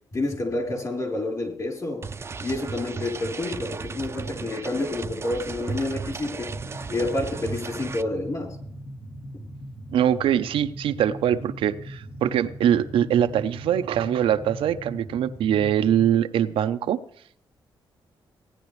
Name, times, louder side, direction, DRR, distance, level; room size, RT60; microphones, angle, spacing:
voice 1, 0.1-2.1 2.4-6.5 6.9-8.6, left 2 dB, 40° left, 2 dB, 3.5 m, -29 dB
sound 1, 2.0-8.0, right 4 dB, 30° right, 0.5 m, -35 dB
sound 2, 6.3-16.1, equal, 75° left, 2.7 m, -40 dB
voice 2, 9.9-17.0, right 10 dB, 90° right, 9 dB, 0.7 m, -23 dB
17.0 x 9.9 x 3.2 m, 0.64 s
cardioid pair, 105°, 9 cm